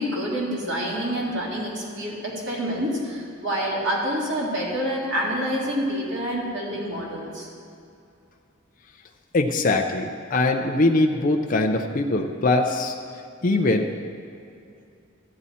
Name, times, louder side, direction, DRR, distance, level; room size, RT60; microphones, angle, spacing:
voice 1, 0.0-7.5, equal, 55° right, -5 dB, 2.3 m, -27 dB
voice 2, 9.3-13.0 13.4-13.9, left 2 dB, 40° left, 3 dB, 0.5 m, -22 dB
14.0 x 8.6 x 4.2 m, 2.6 s
head